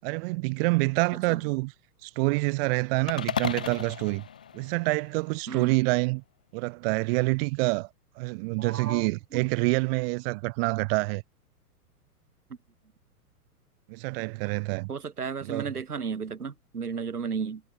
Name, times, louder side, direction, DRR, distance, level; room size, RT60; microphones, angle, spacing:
voice 1, 0.0-1.7 2.0-4.2 4.5-6.2 6.5-7.9 8.2-11.2 13.9-14.9 15.4-15.7, right 27 dB, 40° right, 5.7 m, -27 dB
sound 1, 3.1-5.4, left 8 dB, 5° left, 0.3 m, -35 dB
voice 2, 8.6-9.4 14.9-17.6, right 6 dB, 75° right, 3.3 m, -34 dB
figure-of-eight pair, 110°, 46 cm